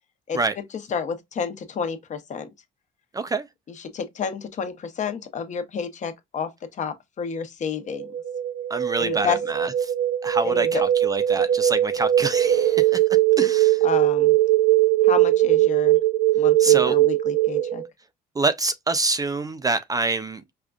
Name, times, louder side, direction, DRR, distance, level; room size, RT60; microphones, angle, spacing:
voice 1, 0.3-0.6 0.9-2.5 3.8-8.1 9.0-9.4 10.4-10.8 13.8-14.4 15.0-16.0 16.4-17.8, left 6 dB, 45° left, 0.9 m, -30 dB
voice 2, 3.1-3.5 8.7-9.7 10.2-13.0 13.4-13.9 16.6-17.0 18.4-20.4, right 3 dB, 20° right, 0.4 m, -26 dB
sound 1, 7.9-17.8, right 13 dB, 70° right, 0.6 m, -20 dB
5.0 x 2.3 x 2.4 m
cardioid pair, 110°, 17 cm